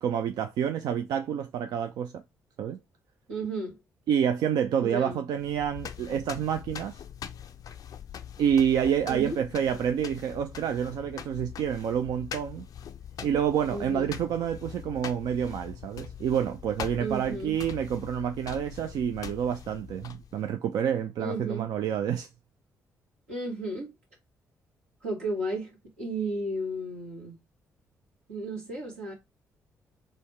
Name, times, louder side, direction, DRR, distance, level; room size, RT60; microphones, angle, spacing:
voice 1, 0.0-2.2 2.6-2.8 4.1-7.0 8.4-12.7 13.2-22.3, right 8 dB, 65° right, 0.3 m, -28 dB
voice 2, 3.3-3.8 4.8-5.2 9.0-9.6 13.7-14.1 17.0-17.6 21.2-21.7 23.3-23.9 25.0-27.4 28.3-29.1, right 1 dB, 90° right, 1.3 m, -34 dB
sound 1, 5.4-20.5, left 9 dB, 55° left, 0.4 m, -42 dB
3.9 x 2.1 x 3.2 m
hypercardioid pair, 40°, 7 cm